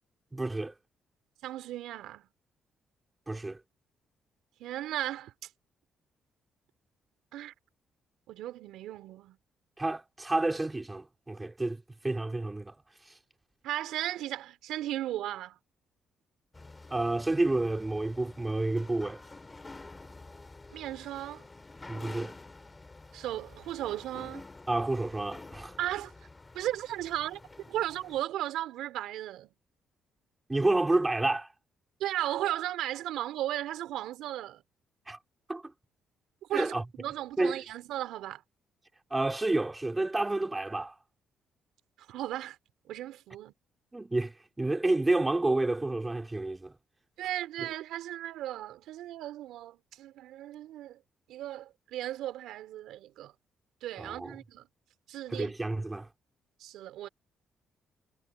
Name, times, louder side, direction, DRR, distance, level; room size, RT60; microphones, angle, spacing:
voice 1, 0.3-0.7 3.3-3.6 9.8-12.8 13.1-13.2 16.9-19.2 21.9-22.3 24.7-25.8 30.5-31.5 35.1-35.2 35.5-35.7 36.5-36.8 37.4-37.6 39.1-40.9 43.9-46.7 54.0-54.4 55.3-56.1, right 2 dB, 15° right, 2.8 m, -29 dB
voice 2, 1.4-2.3 4.6-5.3 7.3-7.5 8.3-9.4 13.6-15.6 20.7-21.4 23.1-24.4 25.8-26.1 26.5-27.4 27.7-29.5 32.0-34.6 36.5-38.4 42.1-42.6 42.9-43.5 47.2-51.0 51.3-53.3 53.8-54.7 55.1-55.5 56.6-57.1, right 13 dB, 85° right, 4.5 m, -36 dB
sound 1, 16.5-28.2, left 3 dB, 20° left, 2.5 m, -49 dB
cardioid pair, 90°, 0 cm